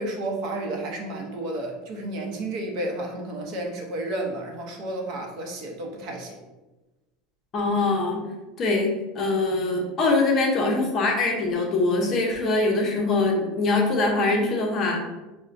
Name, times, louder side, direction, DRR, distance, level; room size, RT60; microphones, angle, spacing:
voice 1, 0.0-6.4, right 1 dB, 50° right, 0 dB, 0.7 m, -31 dB
voice 2, 7.5-8.2 8.6-15.1, left 3 dB, 30° left, 0 dB, 0.6 m, -23 dB
5.3 x 2.1 x 2.5 m, 1.1 s
supercardioid pair, 160°, 0 cm